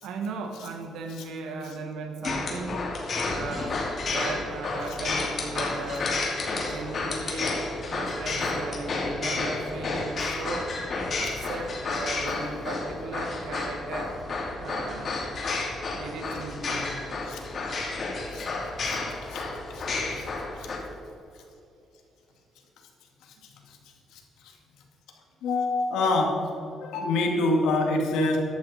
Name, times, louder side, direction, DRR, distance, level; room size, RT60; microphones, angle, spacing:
voice 1, 0.0-3.0 3.2-6.2 6.5-7.6 7.9-10.7 11.2-14.2 14.6-15.2 15.9-16.9, right 3 dB, 85° right, 4 dB, 1.9 m, -36 dB
sound 1, 2.2-20.8, left 3 dB, 50° left, 2.6 m, -31 dB
voice 2, 25.4-26.4 26.8-28.5, left 2 dB, 90° left, 2 dB, 2.3 m, -26 dB
14.0 x 11.0 x 4.3 m, 2.8 s
cardioid pair, 90°, 0 cm